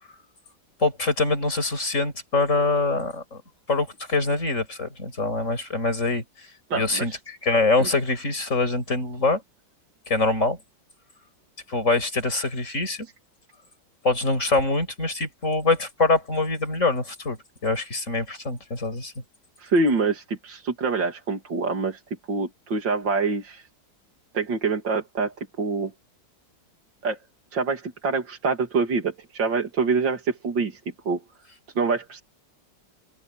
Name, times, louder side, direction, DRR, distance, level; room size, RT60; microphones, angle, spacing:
voice 1, 0.8-3.4 3.7-6.2 6.7-9.4 10.1-10.6 11.7-13.1 14.0-19.1, left 3 dB, 40° left, 6.8 m, -24 dB
voice 2, 6.7-7.2 7.8-7.9 19.6-22.0 22.3-23.7 24.3-25.9 27.0-27.2 27.5-30.8 31.0-31.2 31.7-32.2, right 4 dB, 75° right, 3.3 m, -25 dB
open air
omnidirectional pair, 2.0 m